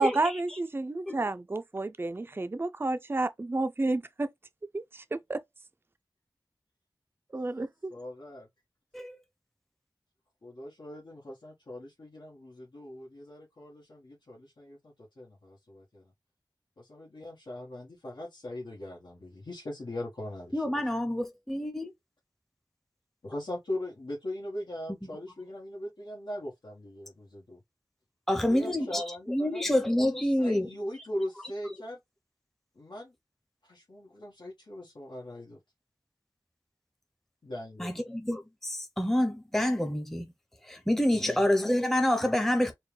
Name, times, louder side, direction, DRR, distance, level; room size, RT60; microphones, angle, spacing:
voice 1, 0.0-4.3 4.7-5.4 7.3-7.9, right 2 dB, 30° right, 0.4 m, -30 dB
voice 2, 7.9-8.5 10.4-16.1 16.8-20.9 23.2-27.6 28.4-29.6 30.1-32.0 32.7-33.1 33.6-35.6 37.4-37.9 41.1-41.5, left 1 dB, 80° left, 1.3 m, -40 dB
voice 3, 20.5-21.9 28.3-29.0 29.3-30.7 37.8-40.3 40.7-42.7, left 1 dB, 5° left, 0.7 m, -27 dB
4.4 x 2.2 x 3.3 m
wide cardioid pair, 70°, 8 cm